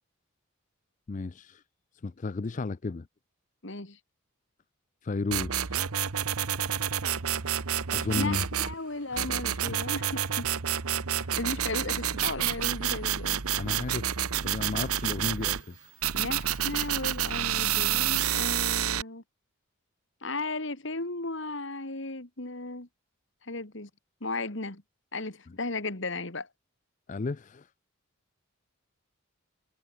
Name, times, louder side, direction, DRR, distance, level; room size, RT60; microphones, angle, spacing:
voice 1, 1.1-1.6 2.0-3.1 5.0-5.8 7.9-8.5 9.1-9.3 9.7-9.8 11.2-11.4 13.6-14.1 14.4-15.9 25.5-25.6 27.1-27.7, left 3 dB, 35° left, 0.4 m, -33 dB
voice 2, 3.6-4.0 8.2-10.5 11.4-13.5 16.1-19.2 20.2-22.9 23.4-23.9 24.2-24.8 25.1-26.5, left 2 dB, 55° left, 2.4 m, -35 dB
sound 1, 5.3-8.7 9.2-15.6 16.0-19.0, right 10 dB, 85° right, 1.1 m, -29 dB
Camera, 11.4-18.4, right 16 dB, 40° right, 4.7 m, -59 dB
head